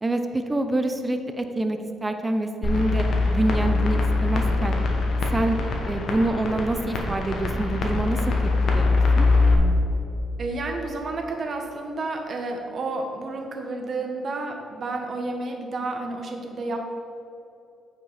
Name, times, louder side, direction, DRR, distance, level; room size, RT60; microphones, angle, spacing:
voice 1, 0.0-3.0 3.3-4.8 5.3-5.6 5.9-8.3 8.7-9.3, right 2 dB, 20° right, 7 dB, 0.6 m, -26 dB
sound 1, 2.6-9.5, left 3 dB, 65° left, 1.2 m, -23 dB
voice 2, 10.4-16.8, right 3 dB, 50° right, 3 dB, 1.2 m, -31 dB
8.8 x 5.2 x 4.1 m, 2.7 s
cardioid pair, 90°, 0 cm